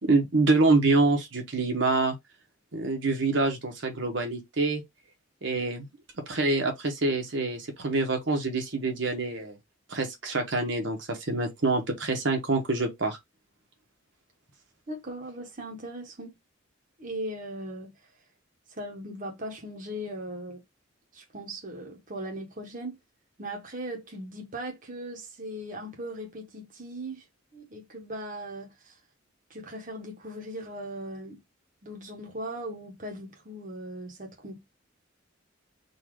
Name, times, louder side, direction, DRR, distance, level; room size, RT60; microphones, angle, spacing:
voice 1, 0.0-2.1 2.7-4.8 5.4-5.9 6.2-9.6 9.9-13.2, right 3 dB, 60° right, 1.2 m, -26 dB
voice 2, 14.9-16.4 17.0-17.9 18.7-20.6 21.1-23.0 23.4-27.2 27.5-29.0 29.5-31.4 31.8-34.8, right 1 dB, 40° right, 1.1 m, -38 dB
4.0 x 2.7 x 4.7 m
head